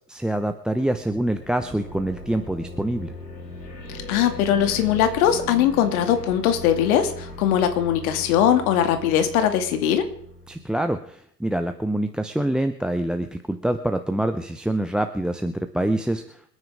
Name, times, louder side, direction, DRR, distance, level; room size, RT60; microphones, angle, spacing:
voice 1, 0.1-3.1 10.5-16.5, right 1 dB, ahead, 10 dB, 0.6 m, -26 dB
sound 1, 0.8-11.0, left 1 dB, 85° left, 5.0 m, -38 dB
voice 2, 4.1-10.1, left 9 dB, 60° left, 8 dB, 2.3 m, -20 dB
27.0 x 9.7 x 3.5 m, 0.66 s
hypercardioid pair, 95°, 49 cm